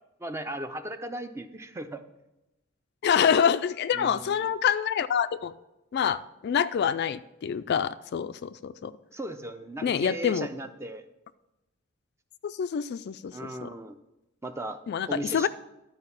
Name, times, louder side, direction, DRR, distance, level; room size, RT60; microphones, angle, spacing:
voice 1, 0.0-2.1 3.9-4.5 9.1-11.0 13.3-14.0 14.4-14.8 15.1-15.5, right 1 dB, 15° right, 9 dB, 0.5 m, -37 dB
voice 2, 3.0-5.5 5.9-8.9 9.8-10.5 12.4-13.3 13.6-13.7 14.9-15.5, left 7 dB, 55° left, 13 dB, 0.3 m, -26 dB
11.5 x 4.7 x 5.6 m, 0.94 s
head